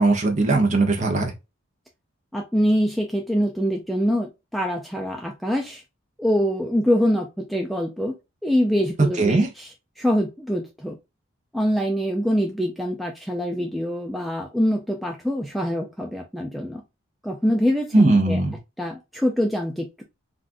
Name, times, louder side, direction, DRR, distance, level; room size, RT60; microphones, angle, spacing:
voice 1, 0.0-1.3 9.2-9.5 17.9-18.6, right 2 dB, 35° right, 0.7 m, -19 dB
voice 2, 2.3-5.8 6.2-8.1 8.4-9.7 10.0-11.0 11.5-16.8 17.2-18.4 18.8-20.0, equal, ahead, 0.3 m, -24 dB
3.5 x 2.5 x 2.5 m
head